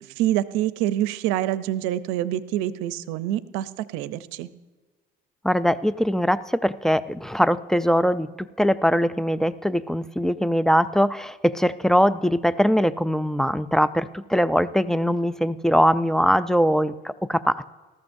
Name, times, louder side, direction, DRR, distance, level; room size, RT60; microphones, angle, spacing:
voice 1, 0.0-4.5, right 13 dB, 85° right, 15 dB, 0.6 m, -26 dB
voice 2, 5.4-17.7, equal, ahead, 14 dB, 0.3 m, -22 dB
19.0 x 14.0 x 2.6 m, 1.3 s
cardioid pair, 110°, 20 cm